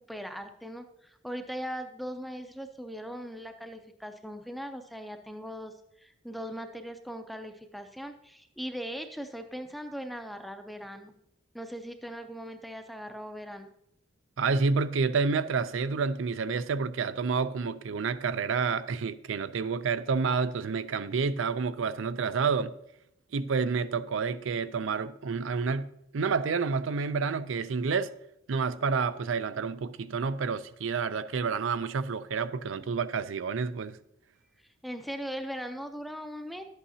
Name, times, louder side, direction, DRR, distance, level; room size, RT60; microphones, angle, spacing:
voice 1, 0.1-11.1 11.5-13.7 34.8-36.6, equal, ahead, 0.4 m, -39 dB
voice 2, 14.4-22.7 23.3-25.9 26.1-28.1 28.5-34.0, right 5 dB, 85° right, 0.5 m, -29 dB
11.5 x 8.3 x 2.7 m
head